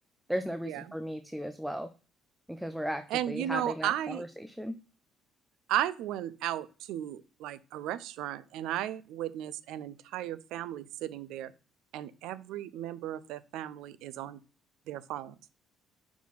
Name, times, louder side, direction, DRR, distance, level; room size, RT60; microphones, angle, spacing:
voice 1, 0.3-1.9 2.5-4.8, equal, ahead, 9 dB, 0.3 m, -36 dB
voice 2, 3.1-4.2 5.7-11.5 11.9-14.4 14.9-15.4, right 12 dB, 80° right, 15 dB, 0.5 m, -35 dB
5.5 x 4.7 x 4.1 m, 0.34 s
cardioid pair, 170°, 0 cm